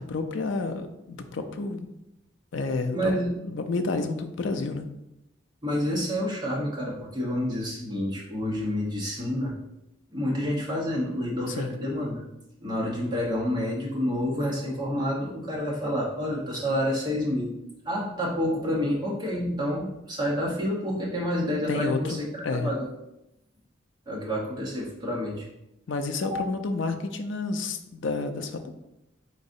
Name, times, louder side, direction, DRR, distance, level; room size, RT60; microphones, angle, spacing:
voice 1, 0.0-1.9 2.5-4.9 11.5-11.8 21.7-22.7 25.9-28.8, left 3 dB, 70° left, 7 dB, 0.4 m, -30 dB
voice 2, 2.9-3.3 5.6-9.5 10.1-12.2 12.6-17.5 17.8-22.2 22.5-22.9 24.1-25.5, equal, 20° right, -5 dB, 1.1 m, -28 dB
4.1 x 3.9 x 2.7 m, 0.88 s
head